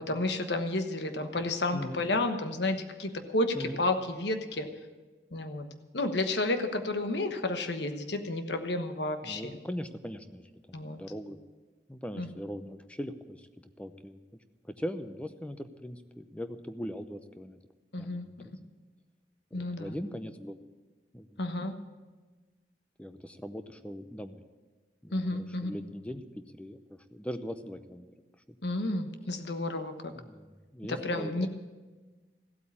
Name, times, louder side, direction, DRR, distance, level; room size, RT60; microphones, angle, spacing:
voice 1, 0.0-4.7 5.3-5.7 5.9-9.6 10.7-11.0 12.2-12.3 17.9-18.5 19.5-20.0 21.4-21.7 25.1-25.7 28.6-30.1 30.9-31.5, left 2 dB, 75° left, 7 dB, 1.2 m, -31 dB
voice 2, 9.2-10.4 10.7-11.4 11.9-13.5 13.8-14.2 14.6-17.6 18.0-18.3 19.5-20.6 21.1-21.4 23.0-24.4 25.0-25.2 25.6-28.1 28.5-28.6 30.2-31.5, equal, 5° left, 9 dB, 0.6 m, -40 dB
15.0 x 8.4 x 8.5 m, 1.3 s
head